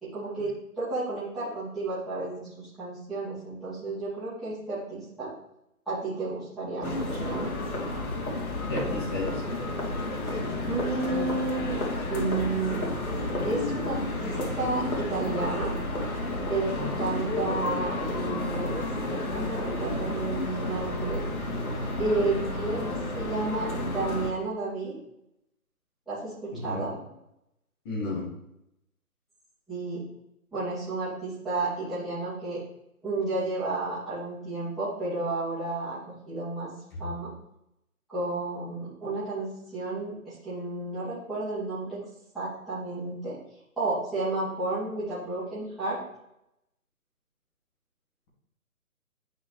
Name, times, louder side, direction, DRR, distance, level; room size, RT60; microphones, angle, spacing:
voice 1, 0.0-5.3 5.9-7.5 10.7-11.8 12.1-12.9 13.4-15.7 16.5-21.2 22.0-24.9 26.1-26.9 29.7-30.0 30.5-32.6 33.0-36.7 37.0-37.3 38.1-42.0 42.3-43.4 43.8-46.0, right 3 dB, ahead, -15 dB, 2.7 m, -32 dB
sound 1, 6.8-24.3, left 2 dB, 70° left, 2.5 m, -31 dB
voice 2, 8.7-9.4 26.5-26.8 27.9-28.2 36.9-37.0, left 2 dB, 15° left, -4 dB, 1.8 m, -32 dB
11.0 x 5.2 x 3.4 m, 0.83 s
figure-of-eight pair, 155°, 44 cm